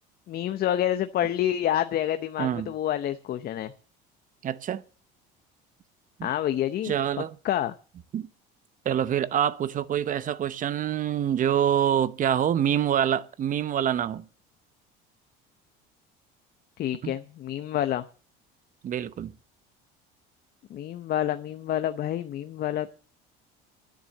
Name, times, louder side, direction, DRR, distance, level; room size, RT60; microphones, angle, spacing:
voice 1, 0.3-3.7 6.2-6.9 7.4-7.7 16.8-18.0 20.7-22.9, left 11 dB, 50° left, 0.8 m, -28 dB
voice 2, 2.4-2.7 4.4-4.8 6.2-6.3 6.8-7.4 8.1-8.3 8.8-14.2 17.0-17.1 18.8-19.3, right 9 dB, 40° right, 0.8 m, -26 dB
10.0 x 10.0 x 7.7 m
cardioid pair, 115°, 21 cm